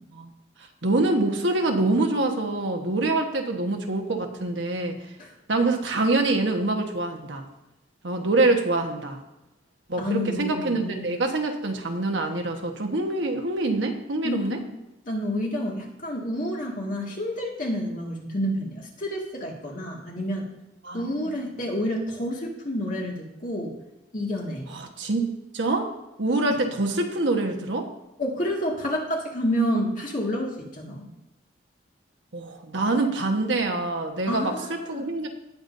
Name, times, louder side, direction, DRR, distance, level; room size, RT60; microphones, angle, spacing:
voice 1, 0.8-5.0 5.5-7.5 8.0-9.2 9.9-14.6 20.8-21.4 24.7-25.3 25.5-25.9 26.2-27.9 32.3-35.3, right 2 dB, 75° right, 3 dB, 1.3 m, -25 dB
voice 2, 10.0-11.1 14.2-14.6 15.1-20.5 20.9-23.7 24.1-24.6 26.5-26.6 28.2-31.1 34.3-35.1, equal, 40° left, -1 dB, 2.1 m, -29 dB
18.5 x 7.1 x 2.7 m, 0.95 s
head